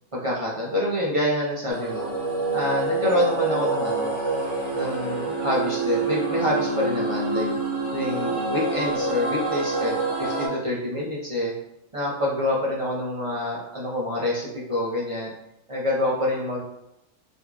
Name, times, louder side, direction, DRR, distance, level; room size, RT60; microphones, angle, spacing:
voice 1, 0.1-2.1 2.5-4.1 4.7-7.5 7.9-11.5 11.9-15.3 15.7-16.6, left 1 dB, 35° right, -5 dB, 0.5 m, -27 dB
sound 1, 1.7-10.5, right 3 dB, 45° left, 1.1 m, -26 dB
4.0 x 2.9 x 2.3 m, 0.85 s
omnidirectional pair, 1.3 m